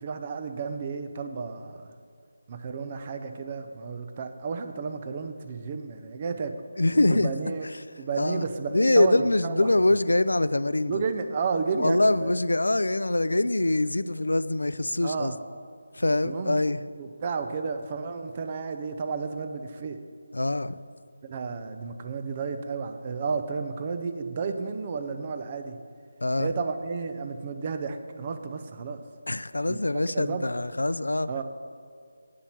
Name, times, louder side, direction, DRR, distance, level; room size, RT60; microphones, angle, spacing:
voice 1, 0.0-1.9 2.5-6.6 7.1-7.7 8.0-9.7 10.9-12.3 15.0-15.4 16.2-16.6 17.0-20.0 21.2-25.8 26.4-29.0 29.6-29.8 30.1-30.5 31.3-31.4, right 5 dB, 30° right, 7 dB, 0.7 m, -32 dB
voice 2, 6.8-7.3 8.2-8.4 8.7-11.0 11.8-15.3 15.9-16.8 20.3-20.7 26.2-26.5 29.3-31.3, left 2 dB, 90° left, 15 dB, 0.4 m, -24 dB
8.6 x 7.5 x 5.8 m, 2.1 s
figure-of-eight pair, 165°, 0 cm